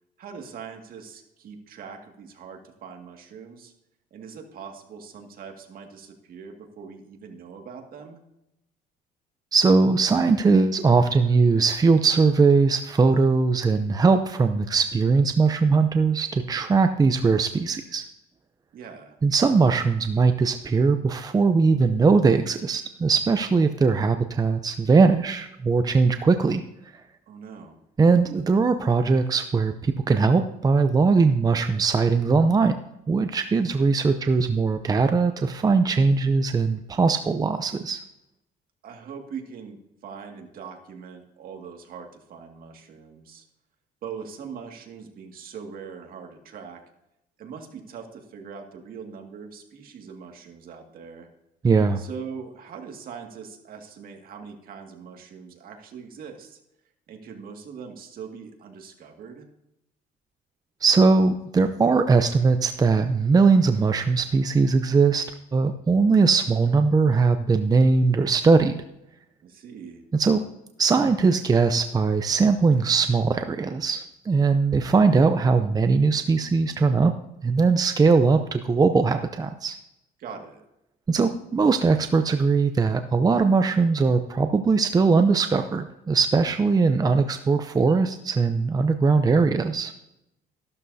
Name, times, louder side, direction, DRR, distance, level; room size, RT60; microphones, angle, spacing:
voice 1, 0.2-3.7 4.1-8.2 18.7-19.1 27.3-27.8 38.8-43.5 44.0-46.8 47.4-51.3 52.0-56.6 57.1-59.5 69.4-70.0 80.2-80.6, right 6 dB, 60° right, 3 dB, 2.1 m, -41 dB
voice 2, 9.5-18.0 19.2-26.6 28.0-32.8 33.1-38.0 51.6-52.0 60.8-68.8 70.2-70.4 70.8-77.1 77.4-79.8 81.1-89.9, right 4 dB, 20° right, 8 dB, 0.6 m, -20 dB
13.5 x 12.0 x 2.8 m, 0.85 s
cardioid pair, 110°, 17 cm